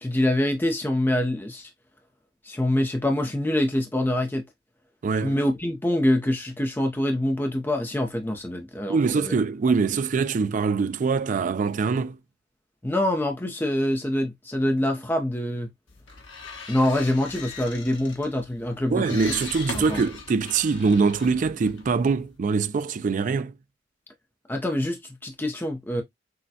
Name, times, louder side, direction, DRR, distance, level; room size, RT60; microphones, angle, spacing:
voice 1, 0.0-1.7 2.4-4.4 5.2-9.3 12.8-15.7 16.7-19.2 19.7-20.0 24.5-26.0, left 1 dB, 10° left, 0.5 m, -25 dB
voice 2, 5.0-5.4 8.9-12.2 18.9-23.5, right 4 dB, 45° right, 0.3 m, -23 dB
sound 1, 15.9-22.4, left 4 dB, 75° left, 1.3 m, -40 dB
6.2 x 2.1 x 2.7 m
head